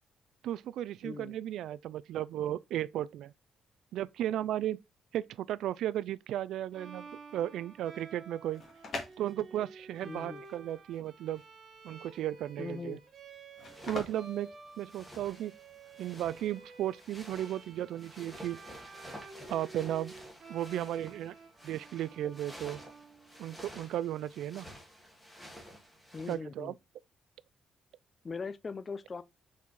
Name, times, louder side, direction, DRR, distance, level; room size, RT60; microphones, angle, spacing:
voice 1, 0.4-3.3 3.9-4.8 5.1-8.6 9.2-11.4 11.8-13.0 13.8-14.5 14.8-15.5 16.0-18.6 19.5-20.1 20.5-21.3 21.6-22.8 23.4-24.7 26.3-26.7, right 12 dB, 75° right, 0.3 m, -35 dB
voice 2, 1.0-1.4 10.0-10.4 12.6-13.0 26.1-26.8 28.2-29.2, left 4 dB, 25° left, 0.4 m, -40 dB
Bowed string instrument, 6.7-23.6, right 4 dB, 40° right, 1.3 m, -52 dB
sound 1, 8.3-15.4, left 3 dB, 45° left, 2.0 m, -45 dB
sound 2, 13.7-26.4, equal, 5° left, 1.8 m, -51 dB
5.8 x 4.2 x 4.7 m
cardioid pair, 160°, 0 cm